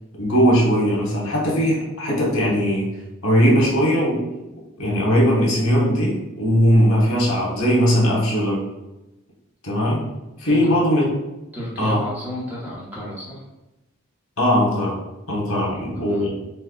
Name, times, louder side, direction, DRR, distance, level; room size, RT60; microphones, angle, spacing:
voice 1, 0.2-2.9 3.2-4.2 4.8-8.6 9.6-10.0 10.4-11.1 11.8-12.0 14.4-15.0 15.3-16.3, equal, 85° left, -4 dB, 1.1 m, -19 dB
voice 2, 10.5-10.8 11.5-13.4 15.9-16.2, left 1 dB, 10° right, -7 dB, 0.9 m, -33 dB
4.4 x 2.2 x 2.4 m, 0.98 s
head